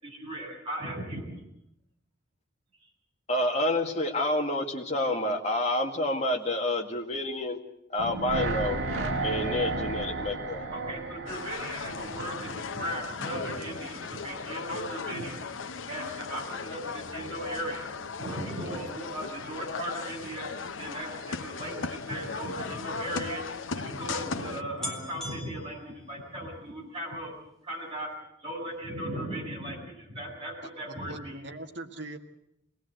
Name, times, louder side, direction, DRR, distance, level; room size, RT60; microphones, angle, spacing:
voice 1, 0.0-1.3 2.8-2.9 8.7-9.4 9.7-9.8 10.7-15.4 15.9-17.9 18.2-27.3 27.6-28.1 28.4-31.4, right 1 dB, 30° right, -2 dB, 7.9 m, -37 dB
voice 2, 3.3-7.6 7.9-8.8 9.2-10.7, left 1 dB, 35° left, 2 dB, 2.1 m, -28 dB
sound 1, 8.0-13.1 13.4-13.5, right 3 dB, 85° right, 1.9 m, -33 dB
sound 2, 11.3-24.6, left 4 dB, 85° left, 0.9 m, -37 dB
sound 3, 20.5-22.5 23.3-23.4 23.6-23.7 24.3-24.4 24.8-26.7 27.1-27.5 27.8-27.9, left 1 dB, ahead, 2.7 m, -45 dB
voice 3, 30.9-32.2, right 2 dB, 60° right, 5 dB, 1.8 m, -41 dB
23.5 x 19.0 x 7.9 m, 0.78 s
head